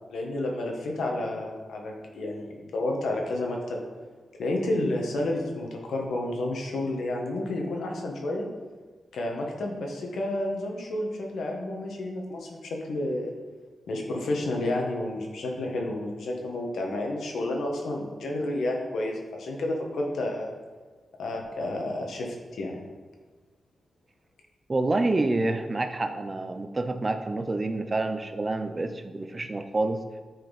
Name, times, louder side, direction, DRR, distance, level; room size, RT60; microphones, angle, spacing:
voice 1, 0.1-3.8 4.4-8.5 9.1-13.3 13.9-20.5 21.2-22.8, left 1 dB, 85° left, 1 dB, 1.4 m, -30 dB
voice 2, 24.7-30.0, right 2 dB, 30° right, 8 dB, 0.6 m, -28 dB
10.0 x 4.4 x 4.1 m, 1.4 s
cardioid pair, 85°, 0 cm